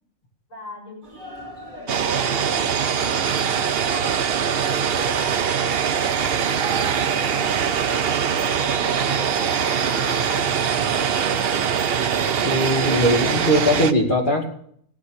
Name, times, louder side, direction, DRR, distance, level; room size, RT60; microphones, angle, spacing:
voice 1, 0.5-8.2 8.6-11.6, left 1 dB, 80° left, 0 dB, 7.2 m, -41 dB
sound 1, 1.0-11.8, right 4 dB, 35° right, 2.9 m, -42 dB
sound 2, 1.9-13.9, right 7 dB, 50° right, 0.9 m, -22 dB
voice 2, 12.4-14.5, equal, 35° left, 1 dB, 2.7 m, -20 dB
17.0 x 8.5 x 6.6 m, 0.63 s
omnidirectional pair, 1.4 m